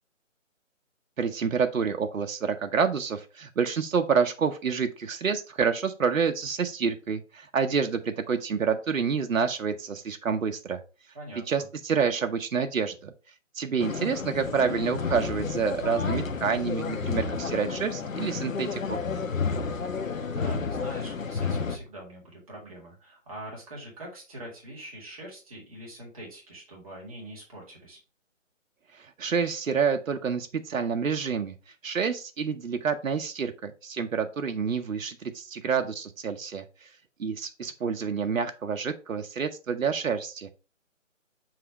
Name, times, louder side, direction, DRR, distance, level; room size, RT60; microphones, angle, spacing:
voice 1, 1.2-10.8 11.5-13.1 13.5-19.0 29.0-31.5 31.8-36.9 37.2-40.5, right 6 dB, 85° right, 7 dB, 0.9 m, -28 dB
voice 2, 11.1-11.7 20.3-28.0, right 1 dB, 25° right, -3 dB, 2.1 m, -43 dB
sound 1, 13.8-21.8, left 5 dB, 90° left, 1.2 m, -31 dB
7.6 x 3.0 x 4.7 m, 0.32 s
hypercardioid pair, 175°, 39 cm